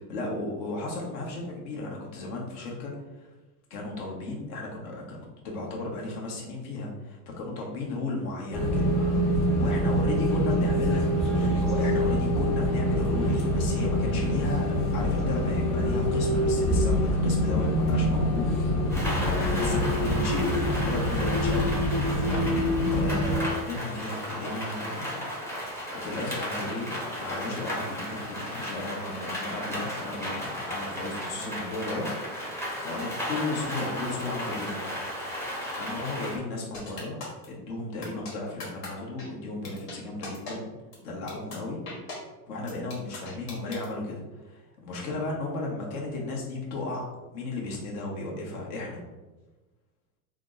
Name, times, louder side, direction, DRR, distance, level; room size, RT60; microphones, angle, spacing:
voice 1, 0.1-3.3 3.7-8.8 9.6-11.1 11.3-14.7 14.9-18.5 19.1-22.3 22.9-25.6 25.9-32.5 32.8-34.8 35.7-40.7 41.0-41.8 42.5-49.0, left 2 dB, 65° left, -2 dB, 1.2 m, -35 dB
sound 1, 8.5-23.4, equal, 45° left, 1.1 m, -25 dB
Rain, 18.9-36.4, equal, 5° left, 0.5 m, -35 dB
sound 2, 36.7-37.5 38.0-38.3 38.6-38.9 39.2-39.3 39.6-40.0 40.2-40.5 40.9-41.0 41.3-41.6 41.9-42.2 42.7-43.9, left 3 dB, 85° left, 1.5 m, -39 dB
3.4 x 2.0 x 3.7 m, 1.1 s
supercardioid pair, 125°, 47 cm